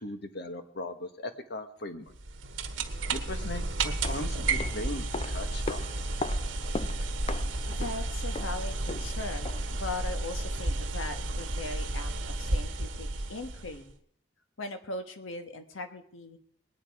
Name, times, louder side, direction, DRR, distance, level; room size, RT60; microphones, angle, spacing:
voice 1, 0.0-2.1 3.1-5.8, left 1 dB, 55° left, 8 dB, 1.3 m, -38 dB
sound 1, 2.1-13.9, right 2 dB, 65° right, 1.3 m, -32 dB
sound 2, 3.8-9.8 10.1-10.2, left 3 dB, 30° left, 0.5 m, -40 dB
voice 2, 7.6-12.1 12.4-13.9 14.6-16.4, left 2 dB, 80° left, 7 dB, 1.4 m, -39 dB
20.0 x 9.6 x 4.8 m, 0.65 s
head